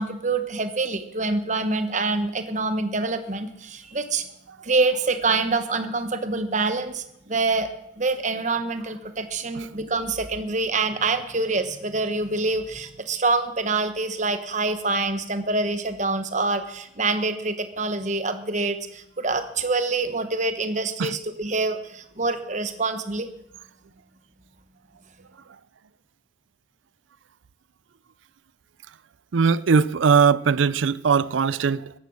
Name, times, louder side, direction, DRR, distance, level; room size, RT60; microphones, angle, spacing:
voice 1, 0.0-4.2 4.6-7.7 8.0-23.3, right 3 dB, 40° right, 1.2 m, -26 dB
voice 2, 29.3-31.9, right 6 dB, 85° right, 0.5 m, -20 dB
15.0 x 11.0 x 6.3 m
head